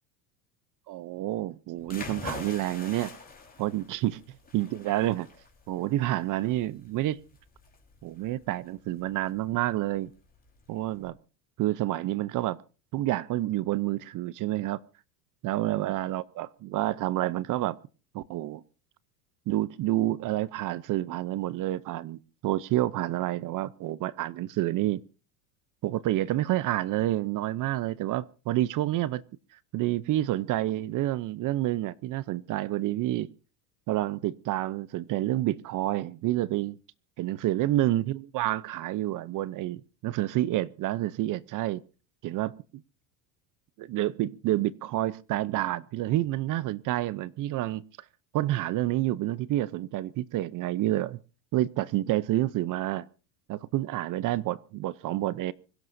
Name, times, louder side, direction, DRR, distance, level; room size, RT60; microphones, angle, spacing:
voice 1, 0.9-3.1 3.6-4.2 4.5-5.3 5.7-7.2 8.0-10.1 10.7-11.2 11.6-12.6 12.9-14.8 15.4-17.8 18.1-18.6 19.5-25.0 25.8-29.2 29.7-33.3 33.9-36.8 37.2-41.8 42.2-42.5 43.8-47.8 48.3-51.2 51.5-53.1 53.5-55.5, right 15 dB, 40° right, 0.7 m, -29 dB
sound 1, 1.8-11.1, left 4 dB, 20° left, 4.2 m, -45 dB
25.0 x 16.5 x 2.7 m
supercardioid pair, 130°, 47 cm